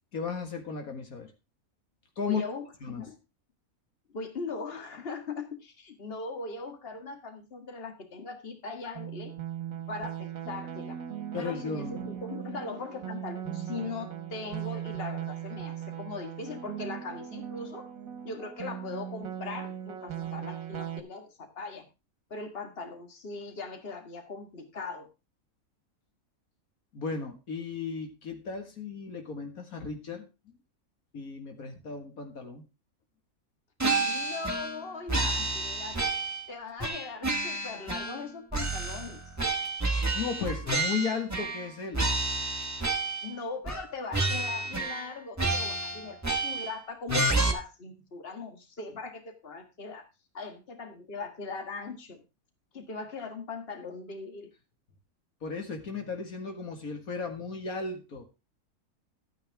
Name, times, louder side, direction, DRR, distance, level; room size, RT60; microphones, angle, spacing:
voice 1, 0.1-1.3 2.2-2.4 2.8-3.1 9.7-9.8 11.3-12.0 26.9-30.3 31.1-32.6 40.1-42.1 55.4-58.2, left 5 dB, 75° left, 5 dB, 2.2 m, -35 dB
voice 2, 2.2-3.2 4.1-9.3 9.9-11.0 11.4-17.8 18.2-21.8 22.3-25.1 34.0-36.1 36.5-39.2 43.2-50.0 50.3-52.2 52.7-54.5, left 4 dB, 40° left, 5 dB, 2.0 m, -40 dB
sound 1, 8.9-21.0, right 10 dB, 70° right, 1.6 m, -39 dB
sound 2, 33.8-34.8 35.1-36.5 36.8-38.2 38.5-41.7 41.9-43.3 43.7-43.9 44.1-45.1 45.4-46.7 47.1-47.5, right 2 dB, 10° right, 1.5 m, -30 dB
13.0 x 9.1 x 3.5 m, 0.27 s
omnidirectional pair, 1.5 m